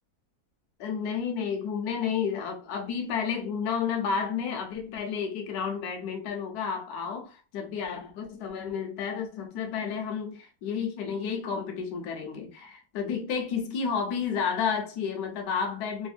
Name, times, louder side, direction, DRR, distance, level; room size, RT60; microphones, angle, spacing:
voice 1, 0.8-16.1, left 6 dB, 70° left, 1.1 m, -31 dB
3.3 x 2.1 x 2.4 m
omnidirectional pair, 1.8 m